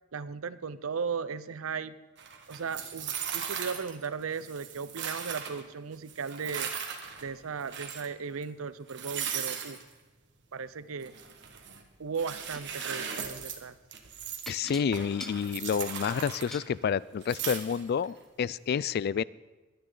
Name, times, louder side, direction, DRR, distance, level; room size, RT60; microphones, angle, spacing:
voice 1, 0.1-1.9 2.5-6.7 7.2-9.8 10.5-11.1 12.0-13.8, right 5 dB, 85° right, 15 dB, 0.6 m, -36 dB
sound 1, 2.2-4.1 4.3-5.6 6.1-7.3 7.6-8.1 8.4-8.5 8.9-9.8 11.0-11.8 12.1-13.6 13.9-14.5 14.9-16.9 17.2-18.1, right 7 dB, 60° right, 1.5 m, -38 dB
sound 2, 12.5-12.9 14.5-16.7 17.7-17.8 18.3-18.4, equal, ahead, 0.6 m, -45 dB
voice 2, 14.5-19.2, left 7 dB, 50° left, 21 dB, 0.3 m, -29 dB
22.0 x 9.6 x 3.9 m, 1.2 s
head